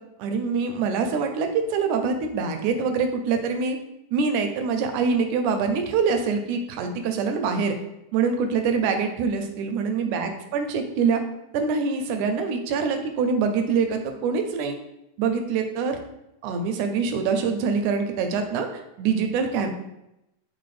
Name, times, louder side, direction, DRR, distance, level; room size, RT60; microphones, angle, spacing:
voice 1, 0.2-3.8 4.1-7.8 8.1-11.2 11.5-14.8 15.2-16.0 16.4-19.7, right 5 dB, 80° right, 5 dB, 1.9 m, -24 dB
5.7 x 2.1 x 3.2 m, 0.87 s
omnidirectional pair, 3.6 m